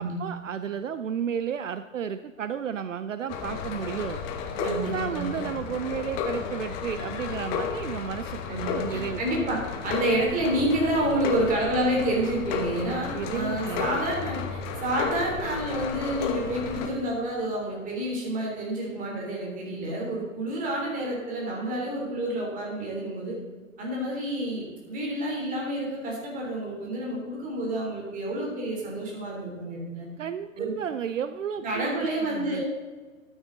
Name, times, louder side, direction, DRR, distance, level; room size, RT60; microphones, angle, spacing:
voice 1, 0.0-4.2 4.6-9.2 13.1-14.0 30.2-32.6, right 8 dB, 65° right, 12 dB, 0.6 m, -33 dB
sound 1, 3.3-16.9, left 6 dB, 15° left, 0.5 m, -33 dB
voice 2, 4.6-5.4 8.5-23.4 23.8-30.1 30.6-30.7 31.6-32.7, right 1 dB, 20° right, -2 dB, 3.4 m, -29 dB
12.5 x 8.8 x 3.9 m, 1.4 s
figure-of-eight pair, 120°, 41 cm